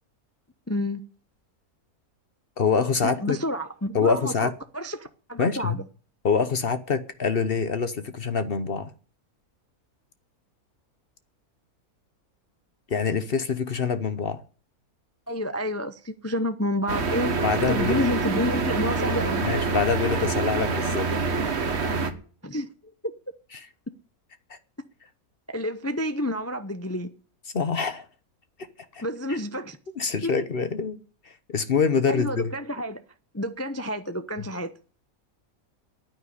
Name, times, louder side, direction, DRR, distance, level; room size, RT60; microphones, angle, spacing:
voice 1, 0.7-1.0 3.0-4.3 4.7-5.8 15.3-17.4 17.7-19.4 22.4-22.7 23.0-23.1 25.5-27.1 29.0-29.8 30.2-30.3 32.1-33.0 33.3-34.7, left 1 dB, 20° left, 0.4 m, -29 dB
voice 2, 2.6-3.4 3.9-4.5 5.4-5.8 6.2-8.9 12.9-14.4 17.4-18.1 19.4-21.1 23.5-23.7 24.5-24.6 27.5-28.1 28.9-29.0 29.3-29.4 30.0-31.0 31.2-32.5, left 5 dB, 45° left, 0.9 m, -25 dB
sound 1, 16.9-22.1, right 4 dB, 50° right, 1.5 m, -26 dB
9.7 x 9.4 x 10.0 m
omnidirectional pair, 1.6 m